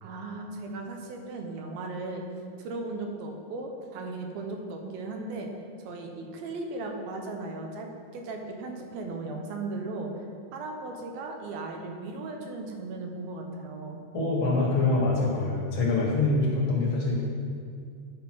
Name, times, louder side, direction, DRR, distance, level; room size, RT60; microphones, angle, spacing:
voice 1, 0.0-2.2 2.6-5.5 5.8-10.3 10.5-14.0, right 3 dB, 85° right, 2 dB, 2.7 m, -37 dB
voice 2, 14.1-17.2, left 3 dB, 45° left, -4 dB, 1.7 m, -25 dB
11.0 x 5.3 x 4.6 m, 2.2 s
omnidirectional pair, 4.1 m